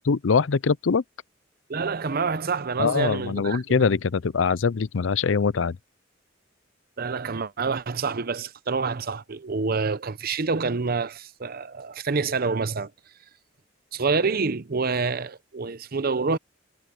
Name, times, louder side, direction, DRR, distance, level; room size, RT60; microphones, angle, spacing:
voice 1, 0.1-1.0 2.8-5.8, left 5 dB, 80° left, 0.5 m, -23 dB
voice 2, 1.7-3.8 7.0-12.9 13.9-16.4, right 4 dB, 50° right, 0.7 m, -27 dB
head